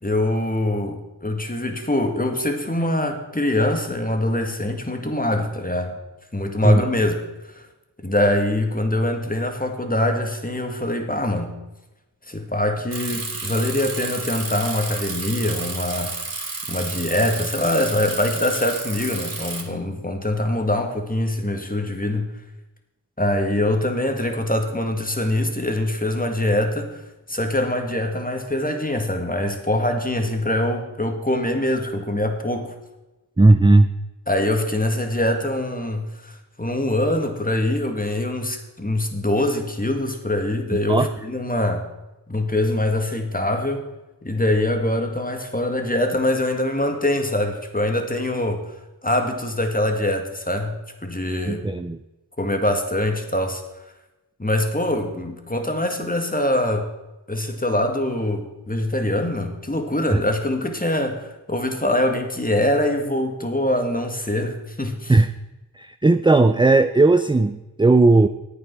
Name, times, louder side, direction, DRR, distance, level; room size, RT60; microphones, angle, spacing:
voice 1, 0.0-5.9 6.3-7.2 8.0-11.6 12.3-16.2 16.7-22.3 23.2-27.0 27.3-32.7 34.3-36.3 36.6-41.8 42.3-43.8 44.2-48.6 49.0-50.7 51.0-51.6 52.4-53.6 54.4-56.9 57.3-65.1, left 1 dB, 20° left, 4 dB, 2.0 m, -23 dB
Bicycle, 12.9-19.6, right 3 dB, 50° right, 3.0 m, -31 dB
voice 2, 33.4-33.9 40.9-41.1 51.5-52.0 60.1-60.2 65.1-65.3 65.8-68.3, right 2 dB, 10° right, 10 dB, 0.5 m, -16 dB
10.5 x 8.7 x 6.0 m, 1.0 s
cardioid pair, 40°, 44 cm